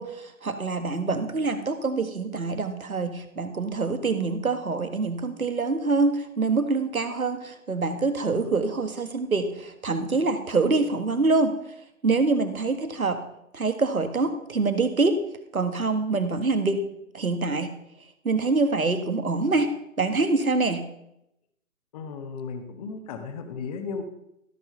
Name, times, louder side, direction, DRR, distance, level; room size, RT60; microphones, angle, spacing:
voice 1, 0.0-11.5 12.0-13.2 13.5-15.2 15.5-16.9 17.1-17.7 18.2-19.7 20.0-20.8, right 3 dB, 80° right, 8 dB, 1.8 m, -25 dB
voice 2, 21.9-24.0, left 5 dB, 25° left, 6 dB, 1.1 m, -35 dB
16.0 x 6.2 x 5.5 m, 0.80 s
figure-of-eight pair, 135°, 42 cm